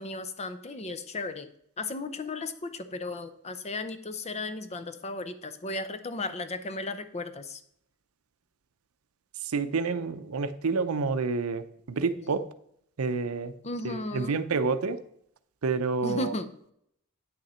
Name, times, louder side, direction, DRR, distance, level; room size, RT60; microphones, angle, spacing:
voice 1, 0.0-1.5 1.8-7.6 12.1-12.3 13.6-14.4 16.0-16.5, left 2 dB, 30° left, 11 dB, 0.6 m, -35 dB
voice 2, 9.4-12.5 13.0-13.5 13.8-15.0 15.6-16.3, right 4 dB, 85° right, 12 dB, 0.6 m, -29 dB
8.9 x 6.5 x 4.3 m, 0.71 s
head